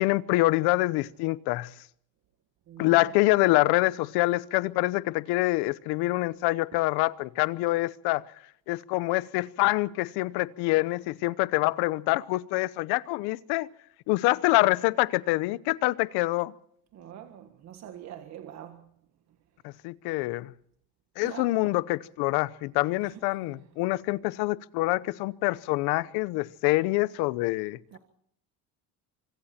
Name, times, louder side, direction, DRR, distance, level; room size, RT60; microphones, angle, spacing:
voice 1, 0.0-1.7 2.8-8.2 8.7-13.7 14.1-16.5 19.6-20.5 21.2-27.8, left 20 dB, 85° left, 0.9 m, -26 dB
voice 2, 2.7-3.1 16.9-18.9 21.2-21.6 23.0-23.6 27.9-28.0, right 10 dB, 45° right, 1.6 m, -44 dB
25.5 x 24.5 x 4.4 m
cardioid pair, 160°, 38 cm